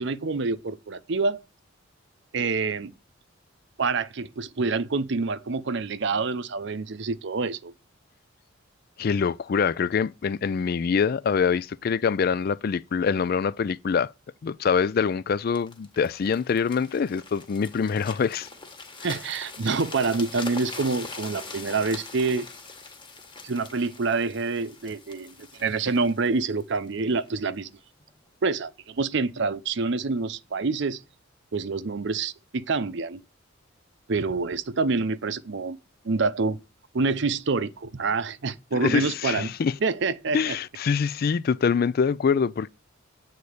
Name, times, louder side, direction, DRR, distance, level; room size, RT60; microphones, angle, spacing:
voice 1, 0.0-1.4 2.3-2.9 3.8-7.7 19.0-22.5 23.4-27.7 28.4-31.0 31.5-33.2 34.1-35.8 36.0-36.6 36.9-39.5 39.8-40.6, right 4 dB, 60° right, 0.6 m, -27 dB
voice 2, 9.0-14.1 14.4-18.5 38.8-39.7 40.3-42.7, left 6 dB, 45° left, 0.3 m, -24 dB
sound 1, 15.5-27.4 28.0-28.2, left 3 dB, 25° left, 1.4 m, -42 dB
8.5 x 4.1 x 6.4 m
head